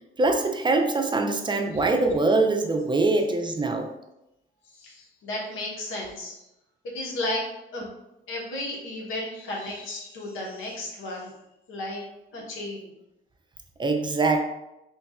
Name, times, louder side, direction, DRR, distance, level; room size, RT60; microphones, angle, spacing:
voice 1, 0.2-3.9 13.8-14.4, right 3 dB, 25° right, 4 dB, 0.5 m, -23 dB
voice 2, 4.6-6.4 6.8-7.5 7.7-7.9 8.3-11.3 11.7-12.0 12.3-12.9, left 1 dB, 85° left, -2 dB, 1.0 m, -34 dB
3.1 x 2.3 x 4.2 m, 0.89 s
cardioid pair, 90°, 20 cm